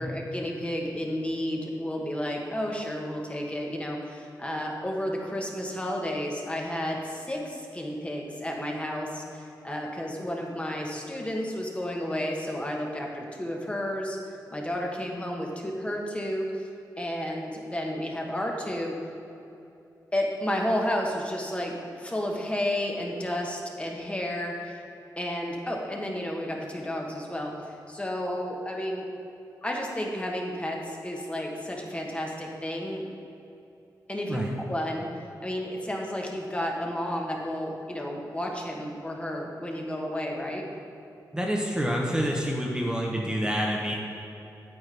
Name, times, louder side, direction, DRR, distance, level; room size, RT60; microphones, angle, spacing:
voice 1, 0.0-14.2 14.5-16.7 17.0-19.0 20.1-24.8 25.2-29.1 29.6-33.0 34.1-34.4 34.7-35.1 35.4-40.7, left 1 dB, 15° left, 0 dB, 1.2 m, -32 dB
voice 2, 41.3-43.9, equal, 10° right, -2 dB, 0.9 m, -27 dB
8.8 x 8.0 x 3.4 m, 2.9 s
wide cardioid pair, 90°, 7 cm